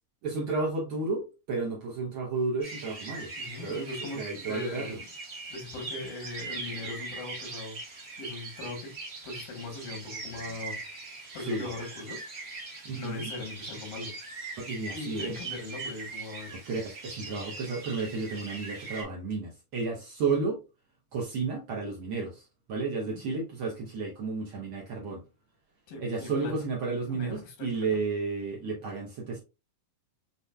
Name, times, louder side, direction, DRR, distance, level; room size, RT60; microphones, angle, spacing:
voice 1, 0.2-3.3 3.6-3.8 4.1-5.0 11.5-11.7 12.8-13.3 14.6-15.3 16.5-20.6 21.1-22.4 22.7-25.2 26.0-29.4, right 4 dB, 75° right, 1.2 m, -32 dB
sound 1, 2.6-19.0, right 3 dB, 60° right, 0.8 m, -41 dB
voice 2, 3.4-5.0 5.5-7.8 8.2-9.0 9.2-11.0 11.3-12.3 12.9-14.1 14.9-16.6 23.0-23.2 25.9-26.5 27.1-27.9, left 3 dB, 80° left, 3.1 m, -40 dB
6.8 x 2.8 x 2.2 m
omnidirectional pair, 3.8 m